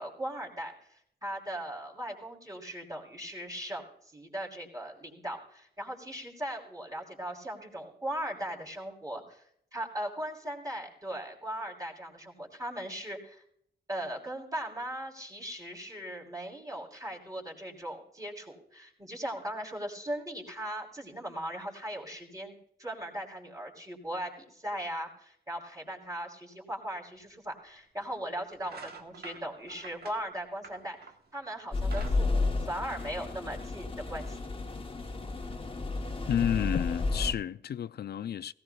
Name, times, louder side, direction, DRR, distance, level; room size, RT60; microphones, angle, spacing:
voice 1, 0.0-9.4 9.7-13.4 13.9-34.4, right 1 dB, 20° right, 3.4 m, -39 dB
sound 1, 27.2-27.3 28.0-28.2 28.6-31.3 31.7-33.3, right 4 dB, 65° right, 1.2 m, -48 dB
sound 2, 31.7-37.3, left 3 dB, 30° left, 1.1 m, -32 dB
voice 2, 36.3-38.5, left 9 dB, 65° left, 0.4 m, -31 dB
17.5 x 16.5 x 2.3 m
cardioid pair, 75°, 18 cm